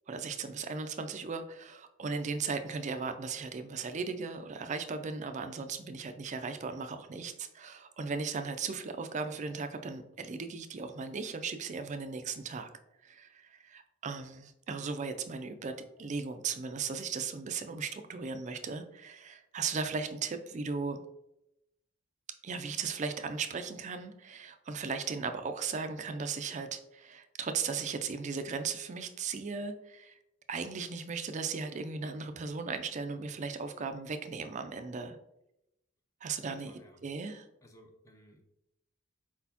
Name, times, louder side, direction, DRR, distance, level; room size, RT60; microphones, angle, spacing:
voice 1, 0.1-12.7 13.0-21.0 22.4-30.2 30.5-35.2 36.2-36.7 37.0-37.5, right 5 dB, 35° right, 8 dB, 0.4 m, -37 dB
voice 2, 36.5-37.0 37.6-38.4, equal, 15° left, 3 dB, 0.6 m, -58 dB
4.4 x 4.1 x 2.8 m, 0.86 s
head